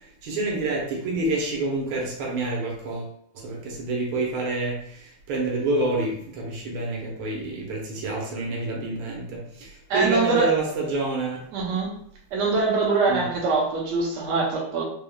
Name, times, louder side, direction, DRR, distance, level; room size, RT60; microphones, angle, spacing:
voice 1, 0.2-3.1 3.4-4.8 5.3-9.4 9.9-11.4 13.1-13.3, right 2 dB, 80° right, -1 dB, 1.7 m, -27 dB
voice 2, 9.9-10.5 11.5-11.9 12.3-14.8, right 4 dB, 60° right, -2 dB, 1.4 m, -23 dB
4.5 x 3.5 x 2.2 m, 0.65 s
omnidirectional pair, 2.3 m